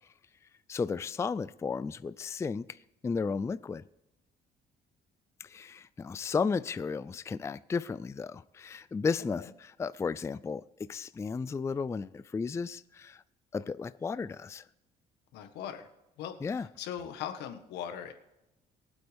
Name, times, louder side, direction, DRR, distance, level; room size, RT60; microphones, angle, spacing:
voice 1, 0.7-3.8 5.4-13.2 13.5-14.6 16.4-16.7, left 5 dB, 15° left, 0.3 m, -34 dB
voice 2, 15.3-15.9 16.2-18.1, left 9 dB, 85° left, 1.5 m, -40 dB
22.5 x 8.1 x 3.5 m
cardioid pair, 110°, 17 cm